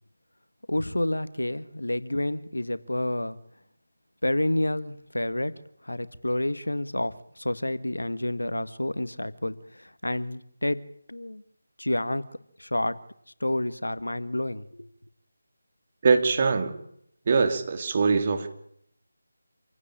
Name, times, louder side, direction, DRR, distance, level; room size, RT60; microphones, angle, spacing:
voice 1, 0.7-3.4 4.2-5.5 5.8-11.4 11.8-12.2 12.6-13.0 13.4-14.9, left 1 dB, 90° left, 14 dB, 1.7 m, -29 dB
voice 2, 16.0-16.7 17.2-18.5, right 4 dB, 35° right, 8 dB, 3.1 m, -22 dB
27.0 x 17.0 x 8.9 m, 0.71 s
figure-of-eight pair, 160°, 0 cm